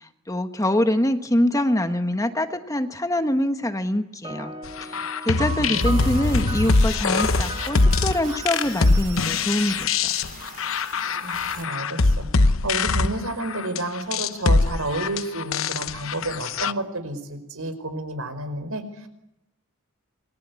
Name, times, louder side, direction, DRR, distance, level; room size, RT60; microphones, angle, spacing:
voice 1, 0.0-4.5 4.8-10.1, left 1 dB, 15° left, 7 dB, 1.4 m, -24 dB
sound 1, 4.2-10.0, right 2 dB, 25° right, 1.6 m, -37 dB
sound 2, 4.8-16.7, left 3 dB, 70° left, 0.9 m, -23 dB
voice 2, 5.6-6.1 11.2-19.1, right 1 dB, 80° right, 9 dB, 5.0 m, -31 dB
sound 3, 5.7-11.7, right 7 dB, 40° right, 2.7 m, -42 dB
29.0 x 22.5 x 8.4 m, 0.87 s
head